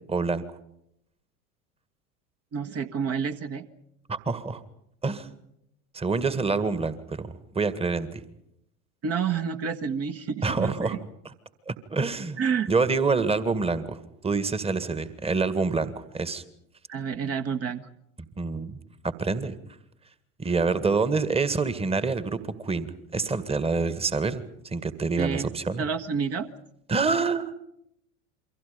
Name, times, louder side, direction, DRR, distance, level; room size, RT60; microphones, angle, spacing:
voice 1, 0.1-0.5 4.1-4.6 5.0-5.3 5.9-8.2 10.4-11.0 11.7-12.4 12.7-16.4 18.4-19.6 20.4-25.8 26.9-27.5, right 4 dB, 15° right, 14 dB, 1.9 m, -27 dB
voice 2, 2.5-3.7 9.0-11.0 12.4-12.7 16.9-17.9 25.2-25.5 25.8-26.5, right 6 dB, 35° right, 7 dB, 1.7 m, -29 dB
29.0 x 24.0 x 5.2 m, 0.76 s
figure-of-eight pair, 80°, 41 cm